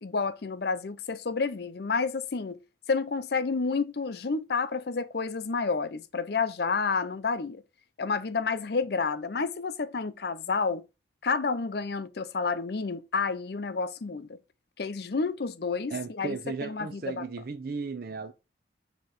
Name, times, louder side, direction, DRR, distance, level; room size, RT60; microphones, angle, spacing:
voice 1, 0.0-2.6 2.9-7.6 8.0-10.8 11.2-14.4 14.8-17.2, left 4 dB, 55° left, 0.5 m, -30 dB
voice 2, 15.9-18.3, right 4 dB, 50° right, 0.6 m, -35 dB
6.9 x 3.0 x 4.7 m
head